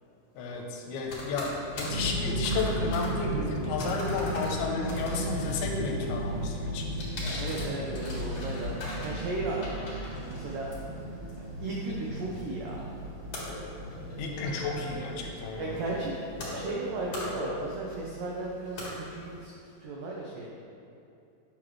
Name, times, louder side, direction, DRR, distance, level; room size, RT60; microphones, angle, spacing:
voice 1, 0.4-7.0 14.2-15.9, left 4 dB, 80° left, 0 dB, 2.6 m, -33 dB
sound 1, 1.1-19.4, left 1 dB, 55° left, 2.3 m, -41 dB
sound 2, 1.9-17.8, right 1 dB, 65° right, 2.1 m, -35 dB
voice 2, 7.4-9.8 10.2-10.7 11.6-12.9 15.6-16.2 16.5-20.5, right 2 dB, 85° right, -3 dB, 1.7 m, -35 dB
8.7 x 6.1 x 3.2 m, 2.7 s
omnidirectional pair, 4.5 m